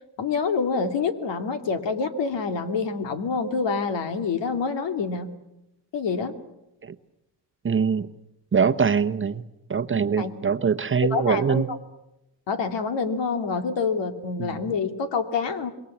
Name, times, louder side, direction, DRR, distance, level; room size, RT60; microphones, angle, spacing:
voice 1, 0.2-5.3 5.9-6.3 10.2-10.3 11.1-11.6 12.5-15.7, left 5 dB, 80° left, 8 dB, 2.6 m, -27 dB
voice 2, 7.6-8.1 8.5-9.4 9.7-11.7 14.4-14.6, right 6 dB, 30° right, 10 dB, 0.9 m, -23 dB
27.5 x 23.0 x 7.3 m, 0.90 s
cardioid pair, 120°, 43 cm